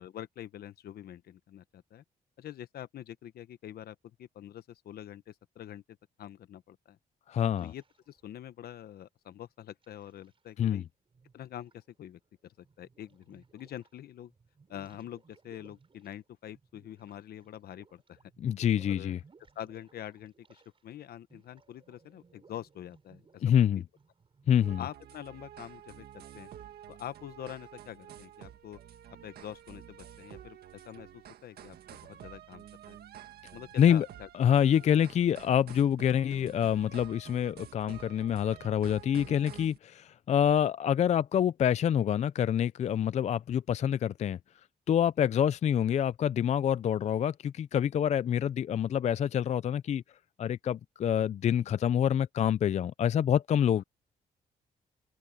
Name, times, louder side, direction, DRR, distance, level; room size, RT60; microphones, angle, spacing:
voice 1, 0.0-2.0 2.4-5.8 6.2-7.0 7.6-10.8 11.3-14.3 14.7-18.2 18.8-19.2 19.5-23.8 24.8-26.5 26.9-28.8 29.2-33.0 33.5-34.3 45.3-45.4, left 11 dB, 75° left, 1.0 m, -45 dB
voice 2, 7.3-7.7 10.6-10.8 18.4-19.2 23.4-23.8 24.5-24.8 33.8-34.1 34.3-44.4 44.9-50.0 50.4-53.8, left 9 dB, 45° left, 0.4 m, -26 dB
sound 1, 7.5-8.6 9.4-10.7 11.1-14.0 14.2-20.9 21.2-24.6, right 5 dB, 35° right, 5.7 m, -63 dB
sound 2, 24.6-39.8, right 11 dB, 80° right, 1.6 m, -50 dB
open air
cardioid pair, 125°, 16 cm